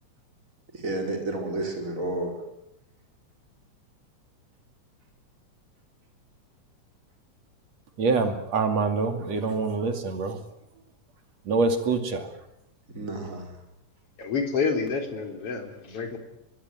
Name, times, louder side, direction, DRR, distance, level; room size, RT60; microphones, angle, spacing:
voice 1, 0.7-2.3 13.0-13.6, right 2 dB, 25° right, 3 dB, 5.2 m, -31 dB
voice 2, 8.0-10.4 11.5-12.3, right 4 dB, 60° right, 7 dB, 3.6 m, -25 dB
voice 3, 14.2-16.2, left 5 dB, 50° left, 5 dB, 4.5 m, -28 dB
23.5 x 23.0 x 9.5 m, 0.82 s
omnidirectional pair, 3.4 m